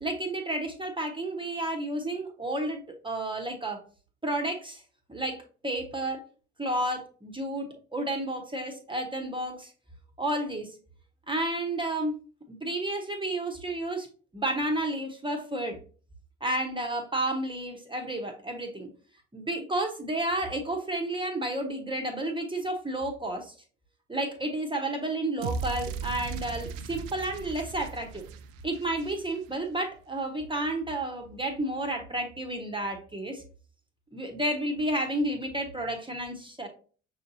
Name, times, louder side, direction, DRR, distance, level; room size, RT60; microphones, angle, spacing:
voice 1, 0.0-3.8 4.2-4.8 5.1-6.2 6.6-9.7 10.2-10.7 11.3-12.1 12.5-14.1 14.3-15.8 16.4-18.9 19.3-23.5 24.1-28.2 28.6-33.4 34.1-36.7, right 1 dB, 15° right, 2 dB, 1.0 m, -31 dB
sound 1, 25.4-29.7, right 6 dB, 60° right, 0.5 m, -37 dB
6.3 x 2.6 x 2.7 m, 0.39 s
figure-of-eight pair, 50°, 36 cm